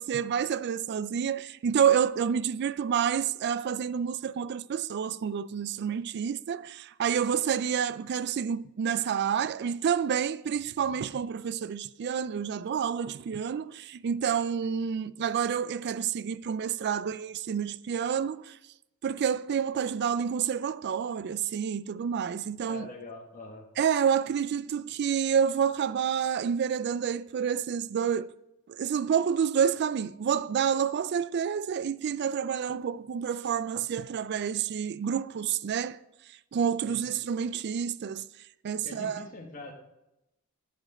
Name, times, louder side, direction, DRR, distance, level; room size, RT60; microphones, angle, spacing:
voice 1, 0.0-18.6 19.0-22.9 23.8-28.3 28.7-36.0 36.5-38.3 38.6-39.3, right 7 dB, 50° right, 0.3 m, -29 dB
voice 2, 22.7-23.7 36.9-37.1 38.8-39.7, left 2 dB, 40° left, 1.3 m, -43 dB
8.8 x 8.1 x 4.2 m
head